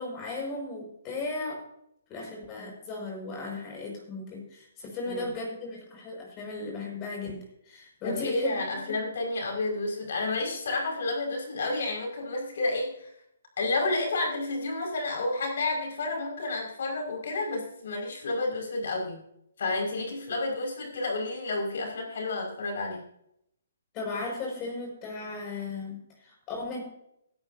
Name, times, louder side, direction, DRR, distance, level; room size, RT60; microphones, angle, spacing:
voice 1, 0.0-1.6 2.1-8.6 8.8-9.0 23.9-26.8, left 3 dB, 20° left, 0 dB, 6.0 m, -36 dB
voice 2, 8.0-13.1 13.6-19.2 19.6-23.0, left 2 dB, 65° left, 0 dB, 5.7 m, -30 dB
16.5 x 11.5 x 2.8 m, 0.74 s
hypercardioid pair, 165°, 0 cm